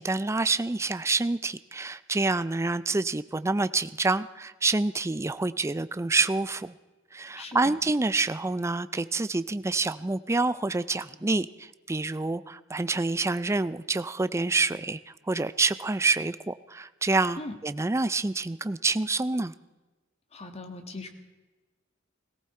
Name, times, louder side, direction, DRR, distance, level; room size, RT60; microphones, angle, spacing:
voice 1, 0.0-6.7 7.1-19.5, right 3 dB, 15° right, 14 dB, 0.4 m, -27 dB
voice 2, 7.3-7.7 17.4-17.5 20.3-21.1, left 2 dB, 30° left, 6 dB, 1.6 m, -39 dB
18.0 x 17.0 x 4.3 m, 1.2 s
head